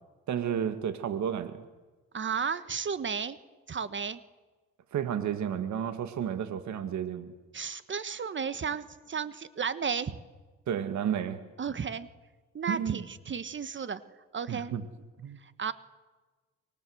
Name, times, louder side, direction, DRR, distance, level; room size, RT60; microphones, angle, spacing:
voice 1, 0.3-1.6 4.9-7.3 10.7-11.4 12.7-13.0 14.5-14.8 15.2-15.4, right 9 dB, 70° right, 10 dB, 1.9 m, -32 dB
voice 2, 2.1-3.4 3.7-4.2 7.5-10.2 11.6-12.1 12.5-14.0 14.3-14.8 15.4-15.7, right 6 dB, 40° right, 14 dB, 1.3 m, -33 dB
25.5 x 23.5 x 7.9 m, 1.2 s
cardioid pair, 90°, 30 cm